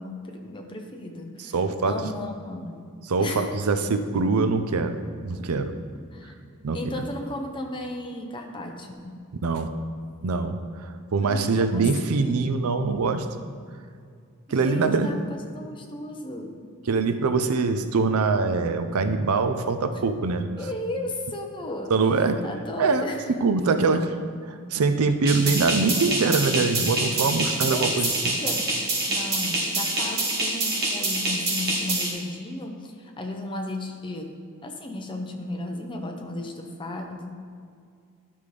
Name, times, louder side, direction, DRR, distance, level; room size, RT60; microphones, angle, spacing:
voice 1, 0.0-1.5 1.9-2.9 3.2-3.5 6.1-6.3 6.7-9.2 11.2-11.8 12.2-12.9 14.5-16.5 20.6-23.3 27.7-28.8 29.1-34.3 34.6-37.3, left 1 dB, 20° left, 2 dB, 0.7 m, -35 dB
voice 2, 1.4-2.0 3.0-5.8 6.6-6.8 9.4-9.7 10.2-13.3 14.5-15.1 16.9-20.5 21.9-22.4 22.8-23.1 23.4-24.2 24.5-28.4, right 4 dB, 85° right, 9 dB, 0.5 m, -23 dB
sound 1, 25.3-32.1, right 2 dB, 45° right, 1.8 m, -26 dB
11.5 x 5.3 x 3.3 m, 2.2 s
head